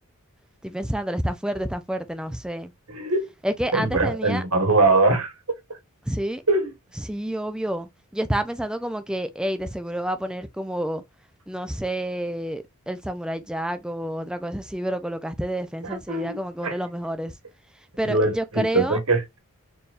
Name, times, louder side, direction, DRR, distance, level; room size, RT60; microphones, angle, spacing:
voice 1, 0.6-2.7 3.4-4.4 6.0-6.4 7.0-11.0 11.5-17.4 18.0-19.0, right 1 dB, 5° right, 0.5 m, -29 dB
voice 2, 2.9-3.3 3.7-5.3 6.5-6.7 16.1-16.4 16.6-16.7 18.0-19.4, right 3 dB, 75° right, 1.7 m, -22 dB
4.4 x 3.5 x 2.5 m
head